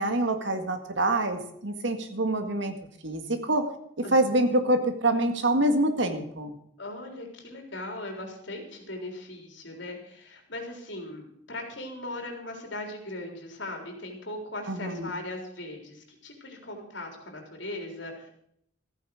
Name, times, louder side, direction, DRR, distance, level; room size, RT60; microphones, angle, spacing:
voice 1, 0.0-2.7 3.0-3.7 4.1-6.5 14.7-15.1, right 1 dB, 70° right, 7 dB, 1.9 m, -26 dB
voice 2, 6.8-18.3, left 1 dB, 70° left, 2 dB, 3.8 m, -39 dB
14.5 x 9.2 x 6.4 m, 0.70 s
head